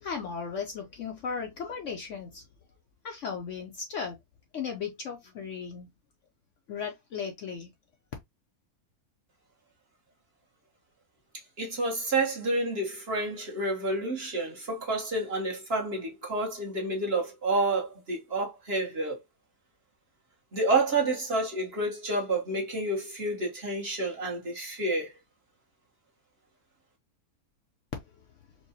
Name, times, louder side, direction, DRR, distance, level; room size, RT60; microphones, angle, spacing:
voice 1, 0.0-2.4 3.0-4.1 4.5-5.9 6.7-7.7, left 6 dB, 60° left, 0.8 m, -36 dB
voice 2, 11.6-19.2 20.5-25.1, right 2 dB, 45° right, 1.3 m, -29 dB
4.5 x 2.3 x 2.7 m
omnidirectional pair, 1.7 m